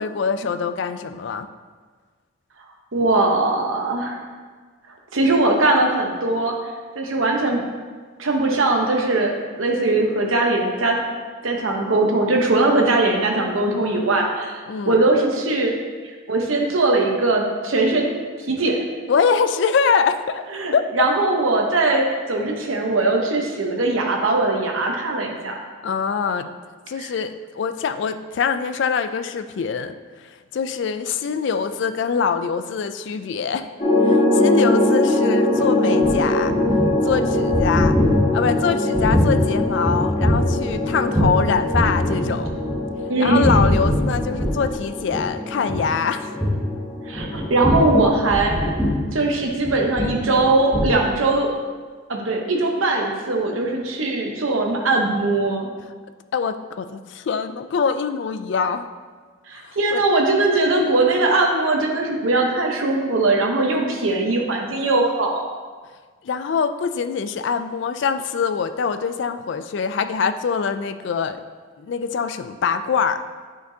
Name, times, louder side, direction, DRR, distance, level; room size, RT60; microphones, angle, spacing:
voice 1, 0.0-1.5 14.7-15.0 19.1-20.4 20.7-20.9 25.8-26.5 26.9-33.7 34.0-36.5 37.0-38.0 38.3-42.5 43.2-46.3 55.9-56.0 56.3-58.9 59.6-60.1 66.2-71.4 71.8-73.2, left 6 dB, 60° left, 10 dB, 0.3 m, -24 dB
voice 2, 2.9-4.2 5.1-6.5 7.0-7.6 8.2-11.0 11.4-14.6 14.9-15.7 16.3-18.8 20.5-25.6 27.0-27.1 43.1-43.5 47.1-48.5 49.1-51.5 52.1-55.7 59.5-65.4, right 2 dB, 85° right, 1 dB, 0.9 m, -20 dB
sound 1, 33.8-47.8, left 2 dB, 25° left, 1.4 m, -22 dB
sound 2, 35.5-41.4 41.7-42.9 43.3-44.8 45.1-45.3 45.6-45.8 46.4-46.6 47.1-50.5 50.7-50.9, equal, 5° right, 0.9 m, -22 dB
9.1 x 4.5 x 2.8 m, 1.5 s
head